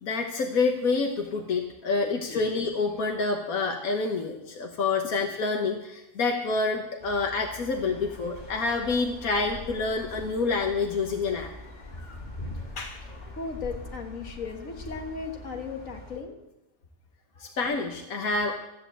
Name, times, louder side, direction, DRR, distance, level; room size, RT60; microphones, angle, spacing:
voice 1, 0.0-11.5 12.0-12.2 12.8-13.0 17.4-18.5, left 4 dB, 85° left, 2 dB, 1.7 m, -28 dB
voice 2, 2.0-2.4 13.3-16.3, left 4 dB, 70° left, 3 dB, 2.0 m, -36 dB
sound 1, 7.0-16.2, left 1 dB, 30° left, 2.7 m, -43 dB
13.5 x 9.0 x 8.0 m, 0.90 s
omnidirectional pair, 1.4 m